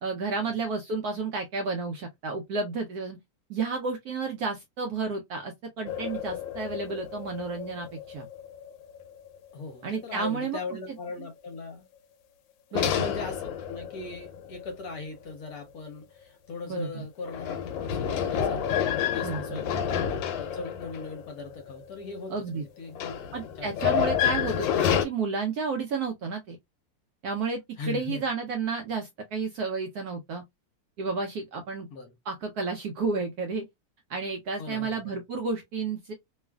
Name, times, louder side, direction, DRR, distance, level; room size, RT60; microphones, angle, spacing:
voice 1, 0.0-3.2 3.5-8.3 9.8-10.6 12.7-13.0 16.7-17.0 19.2-19.6 22.3-22.6 23.3-26.6 27.2-27.6 27.9-30.4 31.0-31.9 32.3-33.6 34.1-36.1, right 4 dB, 70° right, 0.9 m, -31 dB
sound 1, 5.9-9.4 9.9-10.0 12.8-15.1 17.3-22.1 22.9-25.1, left 8 dB, 80° left, 1.3 m, -29 dB
voice 2, 9.5-11.8 12.7-23.2 23.6-24.0 27.8-28.2 31.9-32.1 34.6-35.2, left 3 dB, 60° left, 1.1 m, -39 dB
3.1 x 2.4 x 2.2 m
omnidirectional pair, 2.0 m